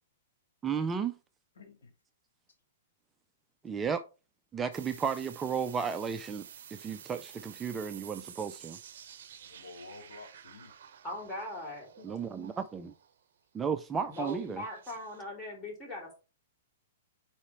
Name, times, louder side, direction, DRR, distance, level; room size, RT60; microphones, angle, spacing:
voice 1, 0.6-1.1 3.6-4.0 4.5-6.4 6.7-8.8 12.0-12.9 13.5-14.6, right 6 dB, 15° right, 0.4 m, -33 dB
voice 2, 1.5-1.9 9.4-10.7, left 3 dB, 75° left, 2.6 m, -50 dB
sound 1, 4.7-13.1 14.1-15.2, right 9 dB, 65° right, 0.6 m, -51 dB
voice 3, 11.0-12.1 14.1-16.2, left 1 dB, 15° left, 3.4 m, -40 dB
4.9 x 4.3 x 4.4 m
hypercardioid pair, 120°, 0 cm